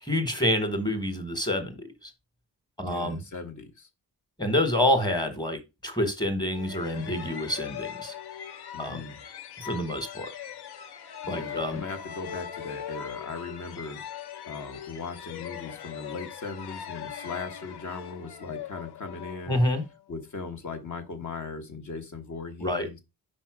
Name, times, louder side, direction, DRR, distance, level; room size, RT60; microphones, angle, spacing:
voice 1, 0.1-1.7 2.8-3.2 4.4-8.1 8.8-9.0 9.6-10.3 11.3-11.8 19.5-19.8 22.6-22.9, left 1 dB, 10° left, 7 dB, 1.3 m, -27 dB
voice 2, 2.8-3.9 8.7-9.2 11.2-14.0 14.5-19.6 20.1-23.0, left 4 dB, 50° left, 5 dB, 1.2 m, -38 dB
sound 1, 6.5-20.0, left 9 dB, 75° left, 0.8 m, -40 dB
5.7 x 4.3 x 4.8 m, 0.24 s
wide cardioid pair, 165°, 39 cm